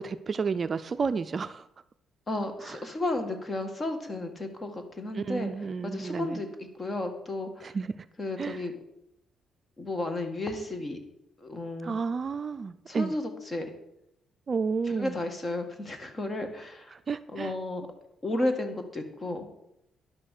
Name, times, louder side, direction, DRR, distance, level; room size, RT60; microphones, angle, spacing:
voice 1, 0.0-1.7 2.6-2.8 5.1-6.4 7.6-8.1 8.4-8.6 11.8-13.1 14.5-15.2 16.9-17.5, right 5 dB, 40° right, 12 dB, 0.4 m, -31 dB
voice 2, 2.3-5.5 5.8-7.8 8.2-8.7 9.8-11.0 11.4-11.9 12.9-13.7 14.9-17.0 17.3-17.9 18.2-19.5, left 2 dB, 30° left, 6 dB, 1.9 m, -33 dB
11.0 x 6.1 x 6.5 m, 0.84 s
cardioid pair, 90°, 0 cm